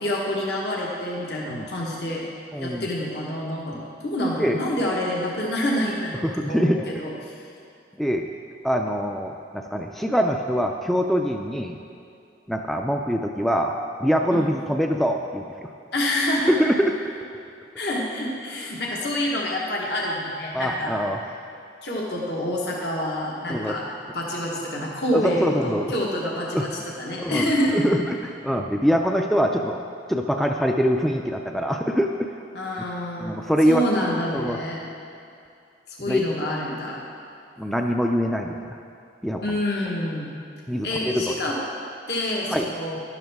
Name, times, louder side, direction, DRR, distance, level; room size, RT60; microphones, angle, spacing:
voice 1, 0.0-2.2 2.6-7.4 14.3-14.6 15.9-16.7 17.8-21.0 21.2-21.3 21.8-23.8 24.1-26.7 27.0-27.8 32.5-33.4 33.6-34.8 36.0-37.0 39.4-40.3 40.8-41.6 42.1-43.0, left 1 dB, 65° left, -3 dB, 1.4 m, -27 dB
voice 2, 2.5-2.9 3.7-3.8 4.4-4.6 6.2-6.8 8.0-8.3 8.6-11.8 12.5-13.7 14.0-15.7 16.5-16.9 20.5-21.2 23.5-23.8 25.1-25.9 26.5-26.7 27.2-29.8 30.1-32.3 33.2-33.8 34.3-34.6 36.1-36.2 37.6-38.6 39.2-39.4 40.7-41.4 42.5-42.7, equal, ahead, 2 dB, 0.4 m, -24 dB
12.5 x 11.0 x 3.5 m, 2.5 s
head